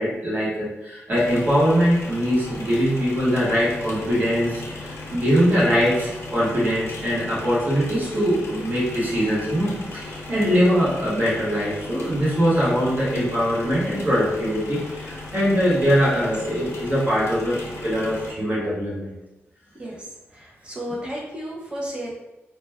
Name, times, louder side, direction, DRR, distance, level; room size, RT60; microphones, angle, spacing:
voice 1, 0.0-19.1, equal, 35° right, -8 dB, 1.2 m, -22 dB
sound 1, 1.1-18.3, left 2 dB, 70° left, 0.5 m, -37 dB
voice 2, 20.3-22.1, equal, 20° right, -4 dB, 0.7 m, -33 dB
2.4 x 2.2 x 3.3 m, 0.99 s
wide cardioid pair, 155°, 5 cm